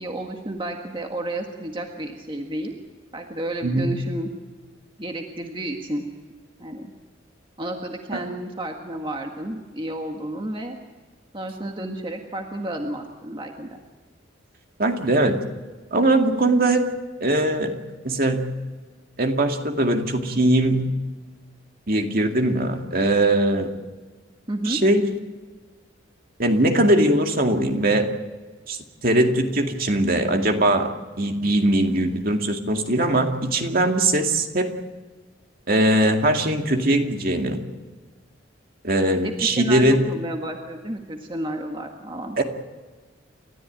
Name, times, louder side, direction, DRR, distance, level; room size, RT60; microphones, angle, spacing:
voice 1, 0.0-2.7 3.1-4.3 5.0-6.1 6.6-6.9 7.6-10.8 11.3-13.8 24.5-24.8 39.2-42.4, right 1 dB, 25° right, 2 dB, 1.7 m, -31 dB
voice 2, 3.6-3.9 14.8-15.4 15.9-16.9 17.2-17.7 18.0-18.5 19.2-20.9 21.9-23.7 24.7-25.1 26.4-28.1 28.7-28.8 29.0-30.9 31.2-34.7 35.7-37.6 38.8-40.1 42.4-42.5, right 1 dB, 50° right, 3 dB, 2.3 m, -20 dB
30.0 x 14.0 x 9.3 m, 1.4 s
head